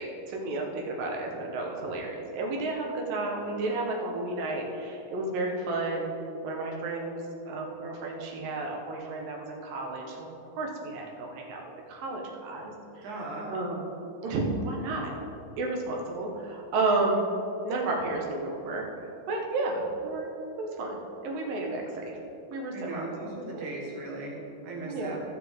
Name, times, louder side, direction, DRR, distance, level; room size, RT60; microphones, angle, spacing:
voice 1, 0.0-6.1 6.4-11.6 11.9-13.1 13.5-13.8 14.2-15.1 15.6-17.3 17.6-20.3 20.6-22.2 22.5-23.1 23.6-23.7 24.8-25.2, right 2 dB, 80° right, 0 dB, 3.0 m, -32 dB
voice 2, 13.0-13.5 22.7-25.2, right 2 dB, 65° right, -3 dB, 3.1 m, -37 dB
15.5 x 6.7 x 3.7 m, 2.9 s
omnidirectional pair, 3.9 m